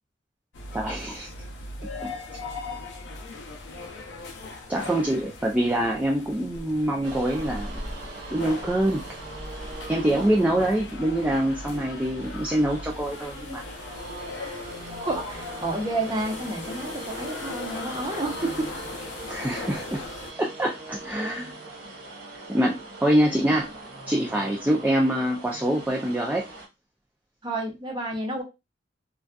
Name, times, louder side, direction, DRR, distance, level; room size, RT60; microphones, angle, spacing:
sound 1, 0.5-20.3, left 3 dB, 70° left, 0.5 m, -39 dB
voice 1, 0.7-1.3 4.7-7.8 8.3-9.0 9.9-13.6 19.3-20.0 20.4-21.5 22.5-23.7 24.1-26.4, right 1 dB, 10° right, -1 dB, 0.3 m, -25 dB
sound 2, 7.0-26.7, right 2 dB, 55° right, 1.0 m, -41 dB
voice 2, 15.1-18.7 27.4-28.4, right 2 dB, 25° right, 0 dB, 0.7 m, -30 dB
2.5 x 2.3 x 2.2 m, 0.23 s
head